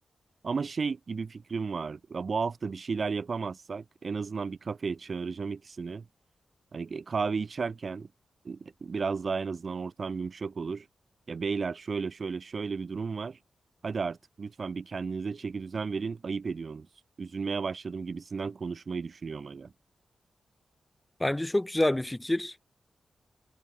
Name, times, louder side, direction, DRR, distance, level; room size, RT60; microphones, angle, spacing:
voice 1, 0.4-6.0 6.7-8.1 8.4-10.9 11.3-13.4 13.8-16.9 17.2-19.7, right 5 dB, 50° right, 3.2 m, -33 dB
voice 2, 21.2-22.7, left 1 dB, 10° left, 2.4 m, -27 dB
wide cardioid pair, 105°, 0 cm